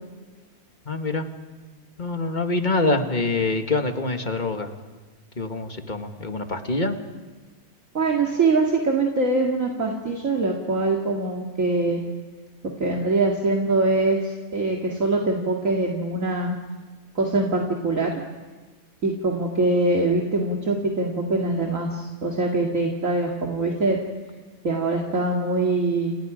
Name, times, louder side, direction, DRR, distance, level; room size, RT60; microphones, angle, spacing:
voice 1, 0.9-1.3 2.0-4.7 5.4-7.0, left 2 dB, 30° left, 5 dB, 2.0 m, -25 dB
voice 2, 7.9-12.0 12.8-16.5 17.2-18.1 19.0-24.0 24.6-26.1, right 2 dB, 60° right, 0 dB, 2.6 m, -23 dB
30.0 x 29.5 x 5.1 m, 1.4 s
omnidirectional pair, 1.6 m